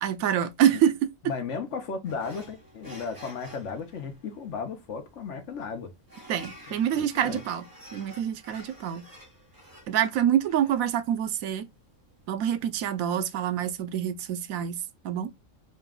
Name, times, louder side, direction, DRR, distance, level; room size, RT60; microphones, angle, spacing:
voice 1, 0.0-1.1 6.3-7.7 7.9-9.1 9.9-11.7 12.3-15.3, right 10 dB, 85° right, 1.0 m, -26 dB
voice 2, 1.3-5.9 6.7-7.4, left 5 dB, 65° left, 1.1 m, -35 dB
sound 1, 2.0-12.9, equal, 20° right, 0.9 m, -50 dB
4.0 x 2.3 x 3.6 m
omnidirectional pair, 1.4 m